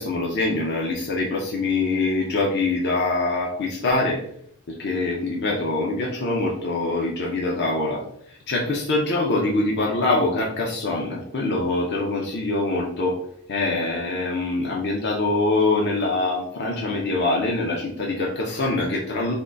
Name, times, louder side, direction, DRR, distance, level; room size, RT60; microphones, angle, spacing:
voice 1, 0.0-4.2 4.7-8.0 8.3-13.2 13.5-19.3, left 2 dB, 55° left, -2 dB, 0.6 m, -24 dB
3.7 x 2.3 x 3.8 m, 0.69 s
head